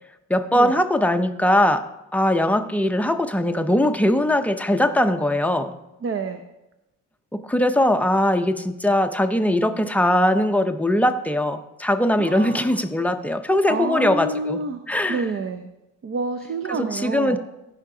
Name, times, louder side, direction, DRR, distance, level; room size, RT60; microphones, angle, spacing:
voice 1, 0.3-1.8 2.1-5.7 7.3-15.2 16.7-17.4, left 1 dB, 5° left, 7 dB, 0.5 m, -21 dB
voice 2, 6.0-6.4 7.8-7.9 12.2-12.8 13.7-14.8 15.1-15.7 16.0-17.4, right 4 dB, 40° right, 7 dB, 0.7 m, -28 dB
15.0 x 5.7 x 3.8 m, 0.93 s
cardioid pair, 105°, 32 cm